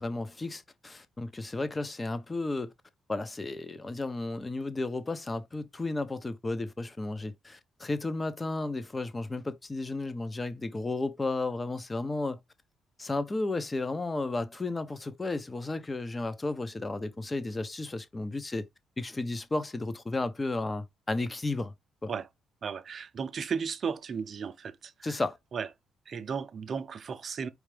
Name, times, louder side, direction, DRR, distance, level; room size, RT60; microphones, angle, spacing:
voice 1, 0.0-2.7 3.1-12.4 13.0-18.6 19.0-21.7 22.0-22.1 25.0-25.4, left 2 dB, 20° left, 0.8 m, -33 dB
voice 2, 22.6-25.2 25.5-25.7 26.1-27.5, right 6 dB, 50° right, 0.6 m, -35 dB
4.7 x 3.3 x 3.3 m
cardioid pair, 90°, 0 cm